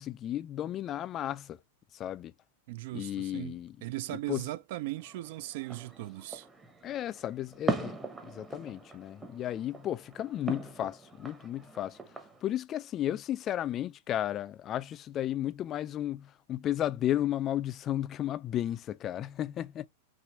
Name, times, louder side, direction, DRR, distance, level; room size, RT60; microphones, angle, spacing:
voice 1, 0.0-1.6 1.9-2.3 2.9-3.8 4.3-4.4 6.8-12.0 12.4-19.9, left 12 dB, 25° left, 0.3 m, -34 dB
voice 2, 2.7-6.5, right 17 dB, 55° right, 0.3 m, -38 dB
sound 1, 5.0-12.4, right 3 dB, 10° right, 0.8 m, -40 dB
6.0 x 2.5 x 3.0 m
supercardioid pair, 145°, 0 cm